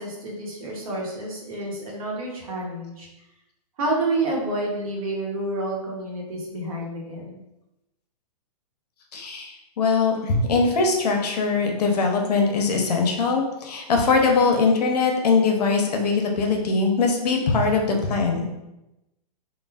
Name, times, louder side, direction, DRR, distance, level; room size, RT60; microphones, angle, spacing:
voice 1, 0.0-3.1 3.8-7.4, right 2 dB, 60° right, -2 dB, 0.9 m, -29 dB
voice 2, 9.1-18.5, left 4 dB, 80° left, 2 dB, 0.6 m, -21 dB
3.2 x 2.0 x 2.3 m, 0.94 s
hypercardioid pair, 160°, 20 cm